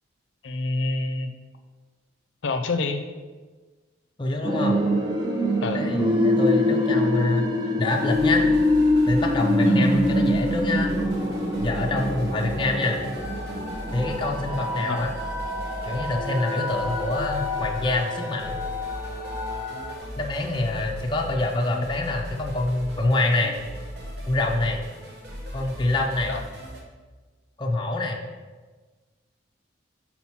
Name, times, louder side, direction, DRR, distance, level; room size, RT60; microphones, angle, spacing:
voice 1, 0.4-1.3 2.4-3.0 5.6-5.9 9.7-9.9 14.9-15.0 26.3-26.4, left 3 dB, 80° left, 6 dB, 0.5 m, -27 dB
voice 2, 4.2-4.8 5.7-7.5 7.8-8.5 9.1-10.9 11.6-13.0 13.9-15.1 15.8-18.5 20.2-23.5 24.3-24.8 25.5-26.3 27.6-28.2, left 2 dB, 25° left, 0 dB, 0.5 m, -25 dB
sound 1, 4.4-20.0, left 1 dB, 25° right, 0.6 m, -25 dB
sound 2, 7.8-26.8, equal, 60° right, 1.0 m, -38 dB
5.7 x 4.3 x 4.3 m, 1.4 s
head